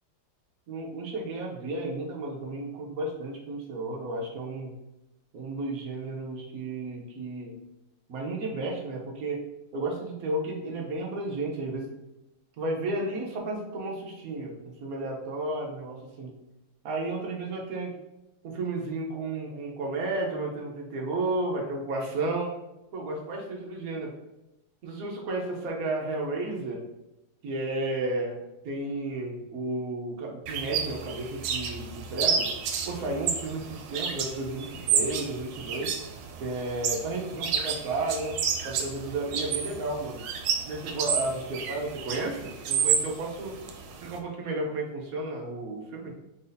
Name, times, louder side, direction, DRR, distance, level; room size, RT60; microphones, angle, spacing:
voice 1, 0.7-4.7 5.3-7.5 8.1-9.5 9.7-11.9 12.6-16.3 16.8-17.9 18.4-22.5 22.9-24.1 24.8-26.8 27.4-32.5 32.8-35.9 36.4-38.4 38.6-40.2 40.7-43.5 44.0-46.1, right 2 dB, 60° right, -1 dB, 1.0 m, -33 dB
sound 1, 30.5-44.2, right 6 dB, 90° right, 1.4 m, -31 dB
4.2 x 2.7 x 3.9 m, 0.95 s
omnidirectional pair, 2.2 m